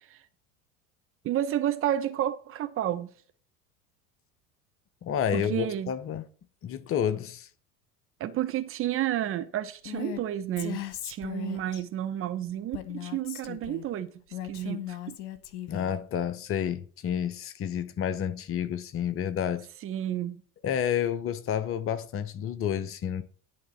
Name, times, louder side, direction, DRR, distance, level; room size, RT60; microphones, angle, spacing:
voice 1, 1.2-3.1 5.3-5.9 8.2-14.1 14.4-15.2 19.8-20.4, right 11 dB, 30° right, 0.8 m, -31 dB
voice 2, 5.0-6.2 6.6-7.5 15.7-19.7 20.6-23.2, left 9 dB, 30° left, 0.8 m, -30 dB
Female speech woman speaking, 9.9-10.2 10.6-11.8 12.7-13.8 14.3-16.0, left 13 dB, 55° left, 1.2 m, -37 dB
11.0 x 3.7 x 7.3 m
figure-of-eight pair, 70°, 43 cm